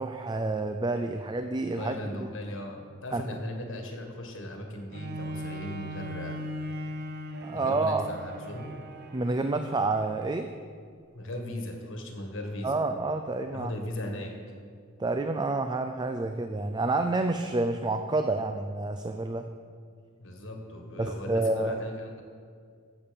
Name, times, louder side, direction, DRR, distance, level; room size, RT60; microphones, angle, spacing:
voice 1, 0.0-2.3 3.1-3.2 7.4-8.1 9.1-10.5 12.6-13.7 15.0-19.5 21.0-21.7, right 2 dB, 20° right, 7 dB, 0.4 m, -29 dB
voice 2, 1.8-6.4 6.7-7.0 7.5-8.7 11.1-12.7 13.5-14.3 20.2-22.2, left 1 dB, 60° left, 3 dB, 1.6 m, -38 dB
Bowed string instrument, 4.9-10.6 11.2-11.3, equal, 50° right, 0.8 m, -39 dB
13.5 x 7.2 x 5.2 m, 2.1 s
head